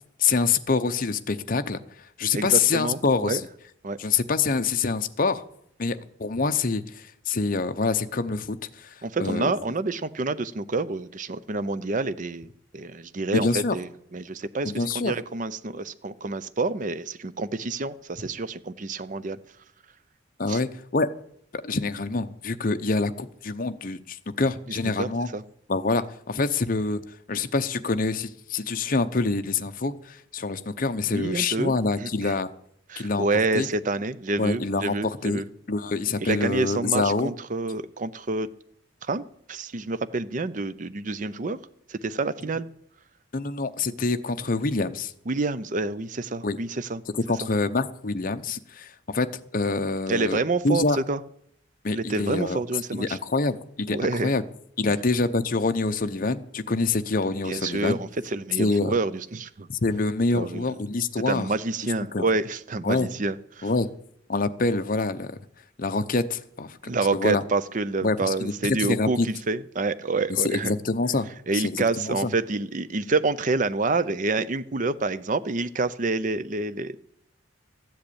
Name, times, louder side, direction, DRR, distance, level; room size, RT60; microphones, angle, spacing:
voice 1, 0.2-1.8 2.2-3.4 4.0-5.4 5.8-9.5 13.3-13.8 14.6-15.1 20.4-21.1 21.6-25.3 25.7-27.0 27.3-32.5 33.0-33.3 33.5-33.7 34.4-35.4 35.7-37.3 43.3-45.1 46.4-46.6 47.1-50.4 50.6-51.0 51.8-52.6 52.9-54.4 54.8-58.0 58.6-58.9 59.7-61.5 62.1-62.3 62.8-63.1 63.6-63.9 64.3-65.4 65.8-67.4 68.0-69.3 70.4-71.3 71.5-72.3, left 3 dB, 45° left, 10 dB, 0.7 m, -26 dB
voice 2, 2.3-3.4 3.8-4.0 9.0-19.4 20.5-20.6 24.7-25.4 31.1-32.3 32.9-35.4 36.2-38.5 39.0-39.2 39.5-41.6 41.9-42.7 45.3-47.0 50.1-51.2 51.9-53.2 53.9-54.3 57.4-59.7 60.3-60.7 61.3-63.7 66.8-70.7 71.5-77.0, right 3 dB, 40° right, 15 dB, 0.5 m, -28 dB
13.5 x 7.9 x 8.6 m, 0.71 s
head